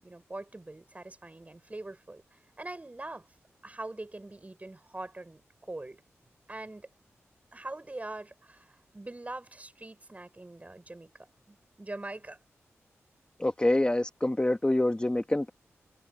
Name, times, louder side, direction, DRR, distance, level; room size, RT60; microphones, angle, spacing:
voice 1, 0.0-3.3 3.6-6.0 6.5-6.9 7.5-11.1 11.5-12.4, right 2 dB, 30° right, 6.6 m, -43 dB
voice 2, 13.4-15.5, left 1 dB, 20° left, 1.5 m, -26 dB
cardioid pair, 50°, 5 cm